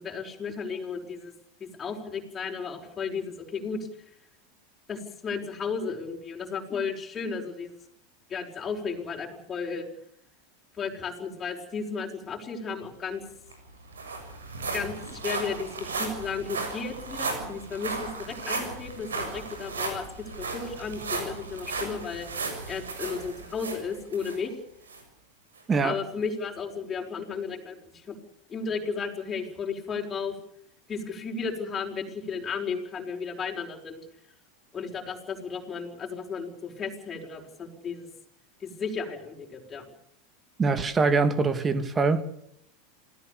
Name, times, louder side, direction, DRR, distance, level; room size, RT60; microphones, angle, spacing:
voice 1, 0.0-1.3 1.6-3.9 4.9-7.7 8.3-9.9 10.8-13.2 14.7-14.9 15.2-20.1 20.4-22.3 22.7-24.5 25.8-28.2 28.5-30.3 30.9-34.1 34.7-38.1 38.6-39.8, left 5 dB, 25° left, 5.5 m, -34 dB
sound 1, 13.2-13.3 13.5-24.4 24.9-25.0 25.6-25.7, right 4 dB, 80° right, 6.9 m, -35 dB
voice 2, 40.6-42.2, right 4 dB, 25° right, 2.6 m, -23 dB
28.0 x 17.5 x 6.9 m
hypercardioid pair, 90°, 0 cm